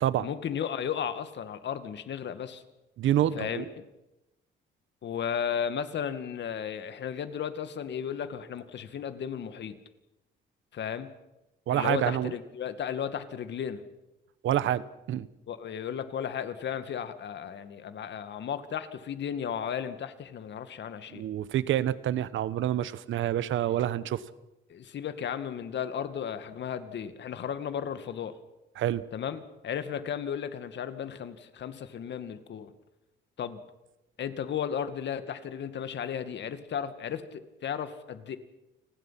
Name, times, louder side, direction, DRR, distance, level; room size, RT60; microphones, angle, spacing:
voice 1, 0.2-2.6 3.3-3.8 5.0-9.8 10.7-11.1 11.7-13.8 15.5-21.2 24.7-28.3 29.1-32.7 33.4-33.6 34.2-38.4, left 8 dB, 65° left, 10 dB, 2.2 m, -34 dB
voice 2, 3.0-3.7 11.7-12.3 14.4-15.3 21.1-24.2 28.8-29.0, right 11 dB, 75° right, 16 dB, 1.2 m, -27 dB
29.5 x 20.5 x 5.9 m, 0.94 s
cardioid pair, 90°, 20 cm